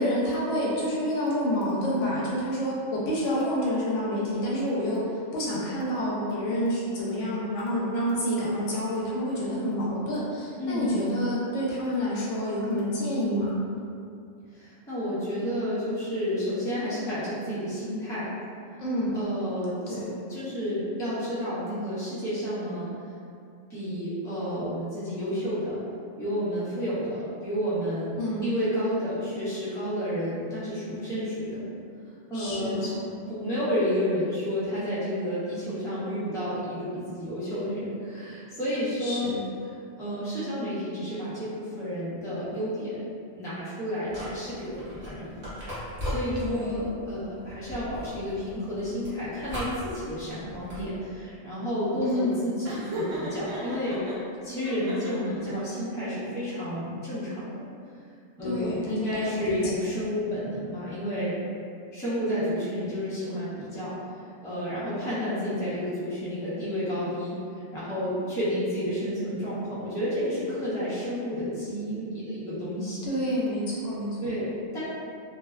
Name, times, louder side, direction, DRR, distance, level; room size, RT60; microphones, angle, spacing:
voice 1, 0.0-13.6 18.8-19.2 19.9-20.1 28.2-28.5 32.3-33.0 39.0-39.4 46.4-46.8 52.0-52.4 58.4-59.8 73.0-74.2, equal, 75° left, -6 dB, 0.9 m, -28 dB
voice 2, 10.6-10.9 14.5-18.3 19.1-19.9 20.3-22.9 23.7-25.8 26.2-28.2 28.4-31.6 32.3-32.9 33.3-39.3 40.0-43.0 43.3-45.5 45.8-54.0 54.4-57.7 58.4-61.4 61.9-63.9 64.4-73.0 74.2-74.8, equal, 5° left, -12 dB, 0.4 m, -31 dB
sound 1, 44.1-50.9, equal, 50° right, 1.1 m, -38 dB
Laughter, 52.6-54.1 54.6-55.5, right 1 dB, 75° right, 1.0 m, -35 dB
2.6 x 2.2 x 2.2 m, 2.4 s
omnidirectional pair, 1.3 m